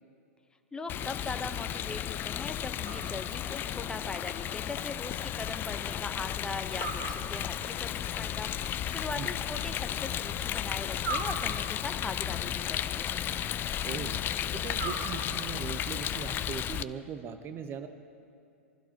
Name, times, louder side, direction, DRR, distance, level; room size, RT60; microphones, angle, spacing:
voice 1, 0.7-13.2, left 3 dB, 10° left, 7 dB, 1.0 m, -40 dB
Rain, 0.9-16.8, left 11 dB, 30° left, 0.5 m, -34 dB
sound 1, 2.8-3.7 6.8-7.8 11.0-12.1 14.7-15.7, right 4 dB, 70° right, 2.0 m, -39 dB
voice 2, 13.8-14.2 14.5-17.9, right 7 dB, 30° right, 8 dB, 1.1 m, -39 dB
26.5 x 15.5 x 3.0 m, 2.5 s
hypercardioid pair, 105°, 7 cm